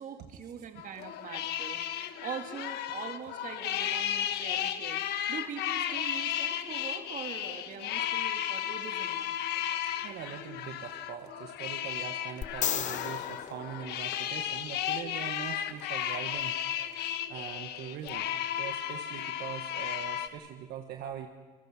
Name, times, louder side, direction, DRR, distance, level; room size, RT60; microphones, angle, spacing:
voice 1, 0.0-9.4, right 7 dB, 50° right, 5 dB, 2.2 m, -43 dB
sound 1, 0.8-20.3, left 11 dB, 80° left, 1.3 m, -34 dB
voice 2, 10.0-16.5 17.3-18.3 18.6-21.3, right 9 dB, 70° right, 4 dB, 1.4 m, -42 dB
sound 2, 12.4-14.7 18.1-18.2, left 9 dB, 45° left, 0.8 m, -35 dB
29.0 x 18.5 x 6.2 m, 1.4 s
cardioid pair, 110°, 17 cm